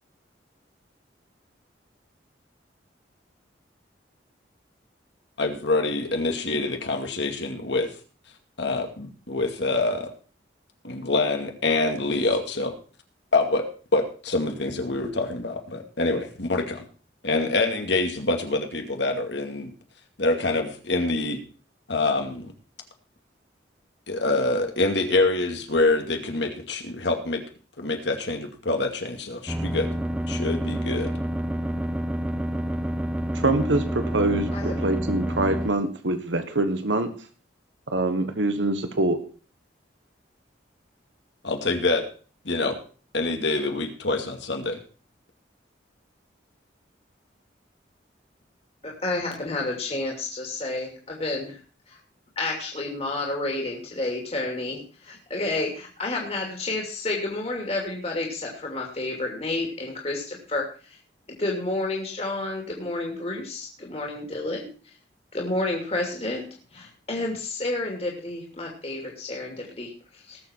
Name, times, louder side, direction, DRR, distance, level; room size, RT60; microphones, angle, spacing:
voice 1, 5.4-7.9 8.6-10.1 10.8-12.7 13.3-13.7 13.9-16.8 17.2-19.7 20.2-21.4 21.9-22.5 24.1-27.4 27.8-29.9 30.3-31.1 41.4-42.1 42.4-42.8 43.1-44.8, left 2 dB, 75° left, 4 dB, 2.3 m, -25 dB
sound 1, 29.5-35.7, right 1 dB, 5° right, 0.8 m, -28 dB
voice 2, 33.3-37.1 37.9-39.2, right 2 dB, 85° right, 9 dB, 1.5 m, -24 dB
voice 3, 34.5-34.8 48.8-51.6 51.9-52.0 52.4-60.6 60.9-61.0 61.4-64.7 65.3-66.4 66.7-70.4, left 2 dB, 35° left, 0 dB, 2.7 m, -30 dB
19.0 x 7.3 x 4.5 m, 0.39 s
head